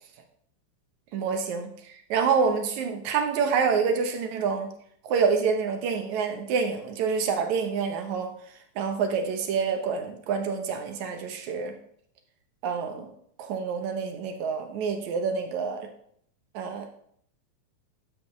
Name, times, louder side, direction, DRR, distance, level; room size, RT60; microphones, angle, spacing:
voice 1, 1.1-1.7 2.1-4.7 5.0-8.4 8.8-11.7 12.6-13.1 13.4-15.9 16.5-16.9, right 5 dB, 70° right, 5 dB, 2.1 m, -27 dB
12.0 x 7.7 x 3.1 m, 0.66 s
omnidirectional pair, 3.9 m